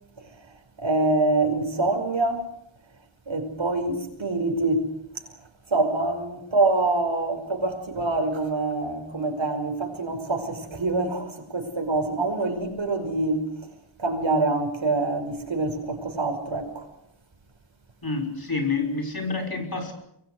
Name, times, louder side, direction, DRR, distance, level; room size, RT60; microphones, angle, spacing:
voice 1, 0.8-2.5 3.3-4.9 5.7-13.5 14.0-16.9, right 2 dB, 65° right, 5 dB, 5.7 m, -25 dB
voice 2, 18.0-19.9, left 4 dB, 45° left, 4 dB, 6.0 m, -28 dB
26.0 x 23.0 x 6.4 m, 0.78 s
wide cardioid pair, 70°, 48 cm